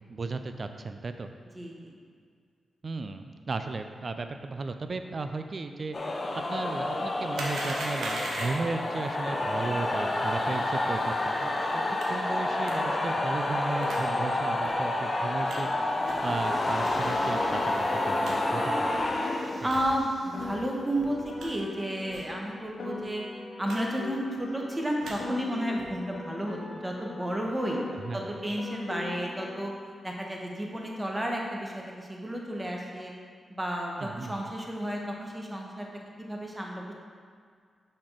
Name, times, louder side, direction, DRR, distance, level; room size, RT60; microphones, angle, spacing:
voice 1, 0.1-1.3 2.8-6.0 6.5-18.9 27.9-28.4 34.0-34.5, right 3 dB, 50° right, 8 dB, 0.5 m, -35 dB
voice 2, 1.5-1.9 19.6-23.2 23.6-27.8 28.1-29.7 30.0-33.1 33.5-35.9 36.3-36.9, equal, 20° right, -1 dB, 1.3 m, -32 dB
sound 1, 5.9-20.1, left 2 dB, 40° left, 0.8 m, -29 dB
sound 2, 7.3-8.8 12.0-12.1 12.6-12.7 13.8-14.0 14.6-14.7 15.5-15.6 16.0-16.3 16.8-16.9 17.5-17.6 17.8-17.9 18.2-18.4 18.9-19.0 19.6-19.9 20.4-20.5 20.9-21.5 22.1-22.3 22.6-22.7 22.9-23.1 23.6-23.8 24.0-24.4 24.8-25.1 25.7-26.0, right 1 dB, 75° right, 1.0 m, -38 dB
Piano, 20.3-24.8 25.2-29.8, left 3 dB, 75° left, 0.9 m, -41 dB
5.8 x 4.4 x 5.0 m, 2.1 s
supercardioid pair, 45°, 0 cm